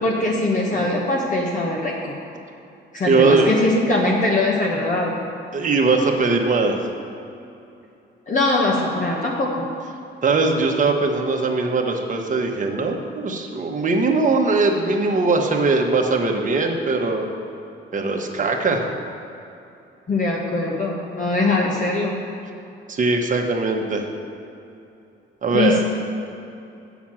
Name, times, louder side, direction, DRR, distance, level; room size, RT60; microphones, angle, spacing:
voice 1, 0.0-2.1 2.9-5.2 8.3-9.6 20.1-22.1 25.5-25.9, left 2 dB, 40° left, -3 dB, 1.2 m, -21 dB
voice 2, 3.1-3.5 5.5-6.8 10.2-17.3 17.9-18.8 22.9-24.0 25.4-25.8, right 3 dB, 40° right, 2 dB, 1.2 m, -20 dB
7.2 x 6.0 x 7.5 m, 2.7 s
cardioid pair, 90°, 20 cm